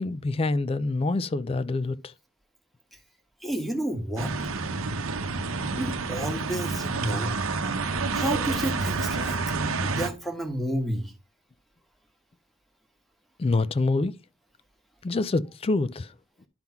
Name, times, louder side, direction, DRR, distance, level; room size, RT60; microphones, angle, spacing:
voice 1, 0.0-2.1 13.4-14.1 15.0-16.1, left 3 dB, 30° left, 0.3 m, -26 dB
voice 2, 3.4-4.3 5.8-7.4 8.1-9.5 9.8-11.1, right 1 dB, ahead, 1.5 m, -31 dB
sound 1, 4.2-10.1, right 4 dB, 80° right, 0.8 m, -29 dB
10.5 x 3.7 x 5.8 m
head